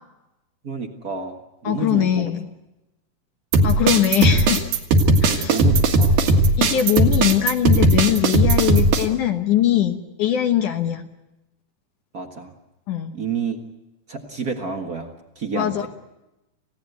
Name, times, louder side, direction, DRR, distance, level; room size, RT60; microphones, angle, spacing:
voice 1, 0.6-1.4 1.6-2.3 3.6-3.8 5.2-6.1 12.1-12.5 13.1-13.6 14.1-15.9, right 4 dB, 50° right, 3 dB, 1.0 m, -29 dB
voice 2, 1.6-2.5 3.6-4.6 5.2-5.6 6.6-11.1 12.9-13.1 15.5-15.9, left 11 dB, 65° left, 6 dB, 2.3 m, -21 dB
sound 1, 3.5-9.0, right 2 dB, 70° right, 3.5 m, -17 dB
28.5 x 17.0 x 8.1 m, 0.97 s
omnidirectional pair, 4.4 m